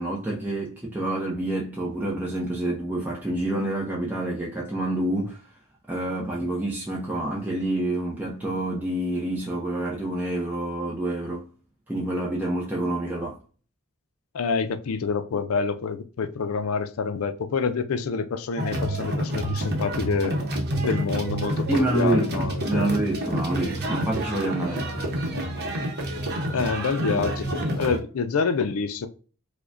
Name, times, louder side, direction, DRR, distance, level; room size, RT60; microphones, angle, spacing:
voice 1, 0.0-5.5 5.9-11.5 11.9-13.4 21.7-24.9 27.0-27.2, right 1 dB, 10° right, 0.5 m, -27 dB
voice 2, 14.3-20.4 20.8-22.9 26.5-27.5 27.8-29.1, left 5 dB, 70° left, 0.4 m, -27 dB
sound 1, 18.6-28.0, right 1 dB, 50° right, 0.8 m, -28 dB
4.8 x 2.2 x 2.5 m
head